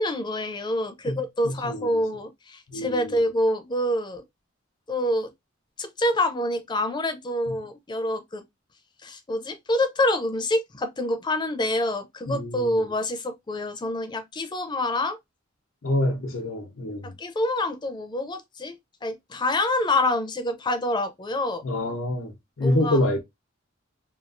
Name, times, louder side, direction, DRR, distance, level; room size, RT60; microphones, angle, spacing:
voice 1, 0.0-4.2 4.9-5.3 5.8-8.4 9.0-15.2 17.2-18.8 19.0-21.6 22.6-23.0, left 1 dB, 25° left, 0.5 m, -26 dB
voice 2, 1.1-2.0 2.7-3.1 7.5-7.6 12.3-12.7 15.8-17.1 21.6-23.2, left 1 dB, 85° left, 0.7 m, -27 dB
2.9 x 2.3 x 2.5 m
head